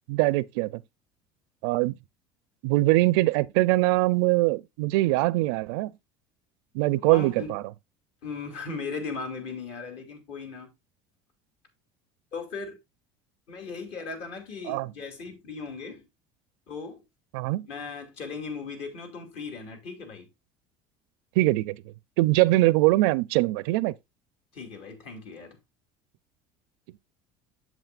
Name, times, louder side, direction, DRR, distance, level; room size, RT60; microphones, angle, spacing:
voice 1, 0.1-0.8 1.6-2.0 2.6-5.9 6.7-7.6 14.6-14.9 17.3-17.7 21.4-21.8 22.2-23.9, right 20 dB, 85° right, 0.4 m, -22 dB
voice 2, 7.1-7.5 8.2-10.7 12.3-12.8 13.5-16.0 16.7-17.0 17.6-20.3 24.5-25.6, left 4 dB, 60° left, 2.6 m, -37 dB
8.1 x 7.3 x 2.4 m
cardioid pair, 130°, 12 cm